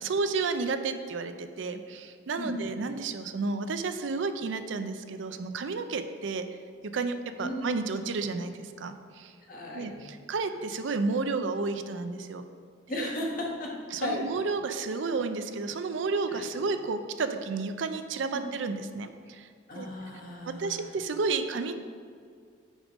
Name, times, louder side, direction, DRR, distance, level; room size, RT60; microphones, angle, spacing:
voice 1, 0.0-6.5 6.8-9.3 9.7-12.4 12.9-13.1 13.9-19.5 19.7-19.9 20.5-21.7, right 4 dB, 75° right, 9 dB, 0.5 m, -31 dB
voice 2, 9.5-9.9 12.9-13.7 14.0-14.2 16.3-16.5 18.3-18.4 19.7-20.9, left 1 dB, 45° left, -2 dB, 1.2 m, -35 dB
6.3 x 5.1 x 5.1 m, 2.1 s
head